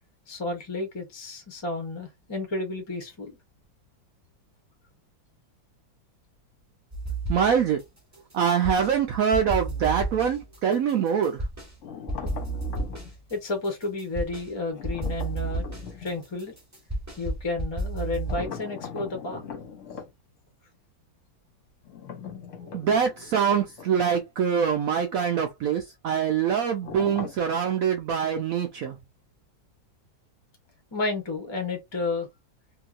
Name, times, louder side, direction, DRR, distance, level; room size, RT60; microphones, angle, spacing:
voice 1, 0.3-3.4 13.3-15.7 16.0-16.5 17.2-19.4 30.9-32.3, left 3 dB, 25° left, 0.6 m, -31 dB
sound 1, 6.9-7.8 8.1-9.0 9.3-11.7 12.1-14.5 14.8-18.5, right 2 dB, 15° right, 0.7 m, -32 dB
voice 2, 7.3-7.8 8.3-11.4 22.6-28.9, right 7 dB, 85° right, 0.7 m, -24 dB
sound 2, 11.8-13.1 14.7-16.2 18.2-20.1 21.8-24.3 24.5-24.7 26.8-27.5, left 6 dB, 50° left, 1.2 m, -40 dB
2.9 x 2.8 x 2.4 m
omnidirectional pair, 2.1 m